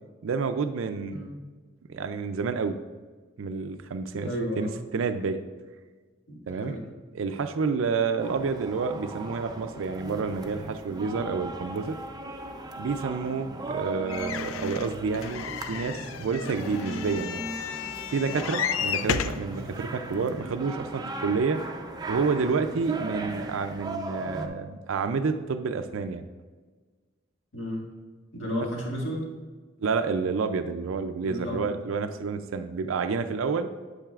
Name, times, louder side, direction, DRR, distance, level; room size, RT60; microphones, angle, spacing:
voice 1, 0.2-1.3 1.9-2.8 3.4-4.3 4.6-4.7 4.9-5.4 6.5-6.8 7.1-12.0 12.8-17.5 18.1-21.6 22.1-26.3 29.8-33.7, right 5 dB, 85° right, 8 dB, 0.4 m, -29 dB
voice 2, 4.2-4.8 6.3-6.8 27.5-27.8 28.3-29.3 31.2-31.7, equal, 65° left, -2 dB, 1.8 m, -32 dB
sound 1, 8.2-24.5, right 2 dB, 20° right, 0.5 m, -37 dB
sound 2, 14.1-19.5 20.2-20.3 20.5-20.6, left 8 dB, 90° left, 0.4 m, -33 dB
8.8 x 7.8 x 2.4 m, 1.4 s
head